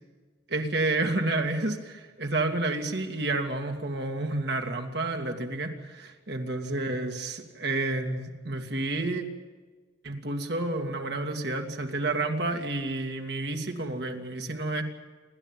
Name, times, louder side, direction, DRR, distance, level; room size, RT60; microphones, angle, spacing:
voice 1, 0.5-9.2 10.0-14.8, right 2 dB, 60° right, 4 dB, 2.3 m, -30 dB
28.0 x 12.5 x 9.0 m, 1.4 s
head